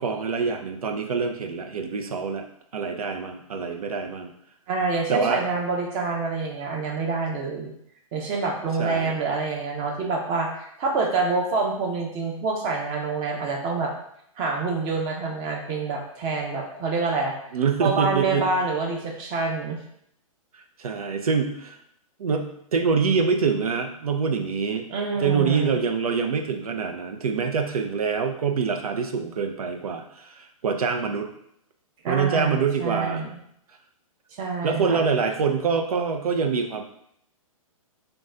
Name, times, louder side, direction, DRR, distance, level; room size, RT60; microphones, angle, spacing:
voice 1, 0.0-2.5 2.7-4.3 5.1-5.4 8.8-9.1 17.5-18.5 20.5-21.8 22.2-24.9 25.2-31.3 32.1-33.2 34.6-36.8, right 5 dB, 85° right, 5 dB, 0.6 m, -25 dB
voice 2, 4.7-7.7 8.1-13.9 14.4-17.3 17.8-19.8 24.9-25.8 32.0-33.4 34.4-35.1, right 4 dB, 30° right, 1 dB, 0.8 m, -27 dB
3.8 x 2.3 x 3.7 m, 0.72 s
hypercardioid pair, 140°, 18 cm